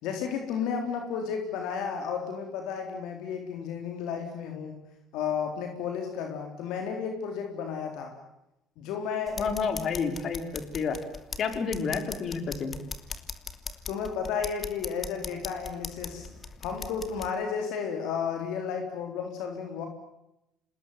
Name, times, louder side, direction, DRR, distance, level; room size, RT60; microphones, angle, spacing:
voice 1, 0.0-4.7 5.1-8.2 8.8-9.5 13.9-16.3 16.6-19.9, left 6 dB, 75° left, 4 dB, 3.9 m, -33 dB
sound 1, 9.3-17.3, left 4 dB, 35° left, 2.8 m, -40 dB
voice 2, 9.4-11.0 11.4-12.7, left 5 dB, 55° left, 7 dB, 5.0 m, -30 dB
27.5 x 20.0 x 9.4 m, 0.86 s
supercardioid pair, 75°, 0 cm